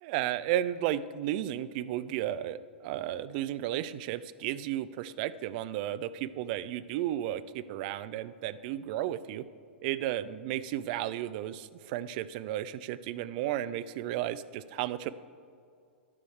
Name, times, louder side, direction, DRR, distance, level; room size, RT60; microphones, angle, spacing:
voice 1, 0.0-9.4 9.8-15.1, right 12 dB, 50° right, 16 dB, 0.3 m, -33 dB
9.7 x 6.2 x 4.5 m, 2.3 s
hypercardioid pair, 110°, 6 cm